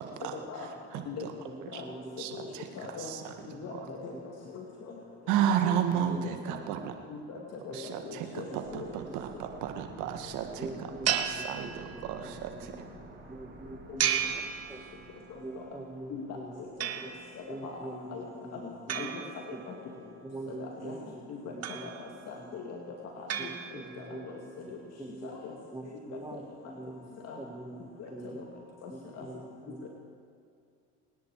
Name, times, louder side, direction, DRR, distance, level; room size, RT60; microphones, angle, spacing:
voice 1, 0.0-1.3 1.7-1.8 2.2-2.7 3.0-3.3 3.7-3.9 5.3-6.9 7.7-10.7 11.1-12.7, right 9 dB, 75° right, 6 dB, 1.9 m, -33 dB
voice 2, 1.4-2.5 3.5-4.2 5.6-6.3 6.6-6.7 7.7-8.2 8.5-9.1 10.6-12.8 13.3-15.0 15.4-17.1 17.5-19.2 19.5-19.6 20.2-22.8 23.4-25.3 25.7-28.5 28.9-29.9, right 2 dB, 10° right, 5 dB, 1.8 m, -45 dB
voice 3, 2.8-3.1 3.6-4.1 4.5-4.9 7.1-7.4 7.6-8.9 13.9-14.0 15.5-15.6 16.1-16.3 16.8-16.9 17.6-17.7 18.1-18.2 18.5-19.2 19.7-19.8 20.6-21.0 21.3-21.4 21.8-21.9 22.3-22.8 23.0-24.4 24.7-24.8 25.2-25.5 26.3-26.4 27.2-27.4 28.0-28.1 28.8-28.9 29.2-29.4 29.8-29.9, left 5 dB, 55° left, 0 dB, 2.3 m, -41 dB
sound 1, 8.6-17.4 17.6-17.7, right 2 dB, 35° right, 3.6 m, -52 dB
sound 2, 11.1-12.3 14.0-15.3 16.8-17.5 18.9-20.0 21.6-22.3 23.3-24.2, right 9 dB, 55° right, 1.5 m, -34 dB
27.0 x 10.5 x 4.8 m, 2.4 s
supercardioid pair, 80°, 30 cm